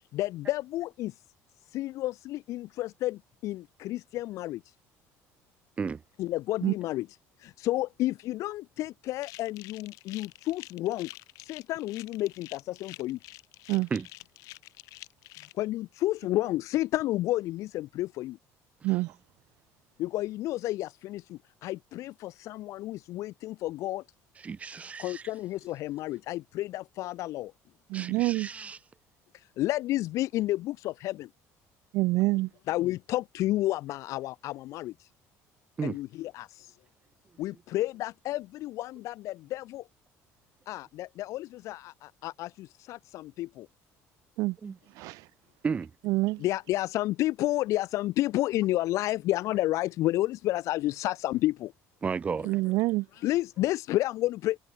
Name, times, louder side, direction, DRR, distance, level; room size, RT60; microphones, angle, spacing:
voice 1, 0.1-1.2 1.7-4.7 6.2-7.1 7.4-11.1 11.4-13.2 15.5-18.4 20.0-24.0 24.7-27.5 29.3-31.3 32.7-35.1 35.8-36.8 37.4-39.9 40.7-43.7 46.4-51.7 53.1-54.6, left 16 dB, 65° left, 2.5 m, -31 dB
sound 1, 9.2-15.5, left 21 dB, 80° left, 7.9 m, -48 dB
voice 2, 24.4-25.2 27.9-28.8 35.8-36.0 44.6-44.8 45.6-45.9 52.0-52.5, right 5 dB, 25° right, 2.2 m, -33 dB
voice 3, 27.9-28.5 31.9-32.5 44.4-44.6 45.0-45.2 46.1-46.4 52.5-53.1, right 21 dB, 80° right, 1.7 m, -26 dB
cardioid pair, 150°, 6 cm